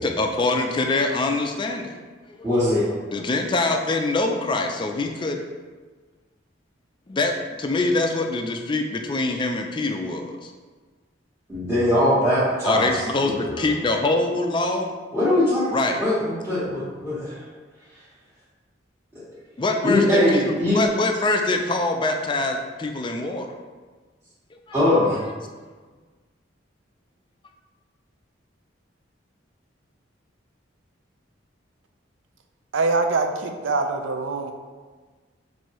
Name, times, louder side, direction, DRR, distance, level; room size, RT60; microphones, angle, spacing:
voice 1, 0.0-2.0 2.4-2.5 3.1-5.4 7.1-10.5 12.6-14.9 15.7-16.0 19.6-23.5, left 2 dB, 25° left, 4 dB, 0.3 m, -24 dB
voice 2, 2.4-2.8 11.5-12.9 13.2-13.7 15.1-15.7 16.0-17.4 19.1-19.3 19.8-20.8 24.7-25.3, left 1 dB, 10° right, -13 dB, 1.1 m, -21 dB
voice 3, 32.7-34.5, right 3 dB, 80° right, 5 dB, 0.5 m, -24 dB
6.0 x 2.7 x 3.0 m, 1.4 s
head